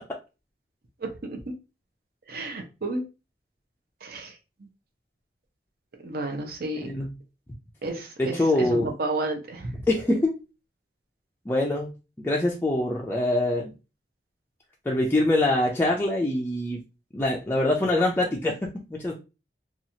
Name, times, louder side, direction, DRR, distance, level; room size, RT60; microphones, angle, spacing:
voice 1, 2.3-3.0 4.0-4.3 6.0-6.9 7.8-9.8, right 2 dB, 60° right, 5 dB, 0.7 m, -32 dB
voice 2, 6.8-7.1 8.2-8.9 9.9-10.3 11.5-11.9 12.2-13.7 14.9-16.8 17.1-18.5 18.9-19.1, left 1 dB, 10° left, -2 dB, 0.4 m, -24 dB
2.9 x 2.3 x 2.7 m, 0.30 s
head